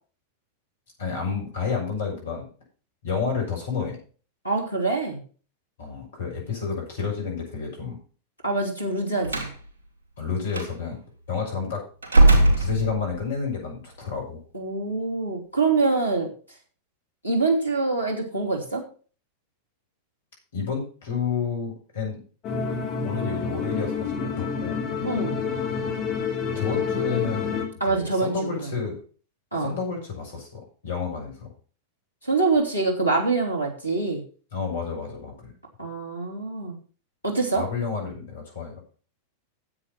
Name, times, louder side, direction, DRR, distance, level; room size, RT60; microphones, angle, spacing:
voice 1, 1.0-2.4 3.0-4.0 5.8-8.0 10.2-11.0 11.3-11.8 12.5-14.4 20.5-22.2 23.0-24.8 26.5-29.0 29.6-31.5 34.5-35.5 37.5-38.7, left 5 dB, 65° left, 0 dB, 6.5 m, -30 dB
voice 2, 4.4-5.2 8.4-9.5 14.5-16.3 17.2-18.8 25.0-25.4 27.8-28.3 28.6-28.7 29.5-29.8 32.2-34.2 35.8-36.8 37.2-37.6, right 3 dB, 90° left, 1 dB, 2.9 m, -25 dB
Slam, 9.2-9.6 10.5-10.7 12.0-13.3, right 2 dB, 70° right, 2.6 m, -18 dB
sound 1, 22.4-27.7, left 5 dB, 35° left, 3.0 m, -28 dB
9.9 x 8.0 x 5.8 m, 0.39 s
figure-of-eight pair, 90°, 0 cm